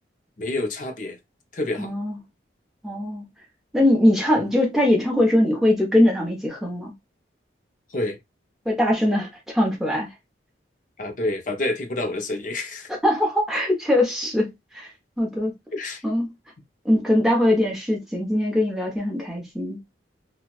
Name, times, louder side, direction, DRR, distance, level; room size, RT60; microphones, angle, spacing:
voice 1, 0.4-1.2 1.5-1.9 7.9-8.2 11.0-12.9 15.7-16.0, left 2 dB, 45° left, 0.7 m, -28 dB
voice 2, 1.8-2.2 2.8-3.2 3.7-6.9 8.6-10.1 13.0-14.5 14.7-14.9 15.2-15.5 16.0-16.3 16.8-19.8, left 1 dB, ahead, 1.0 m, -21 dB
3.0 x 2.4 x 2.4 m
head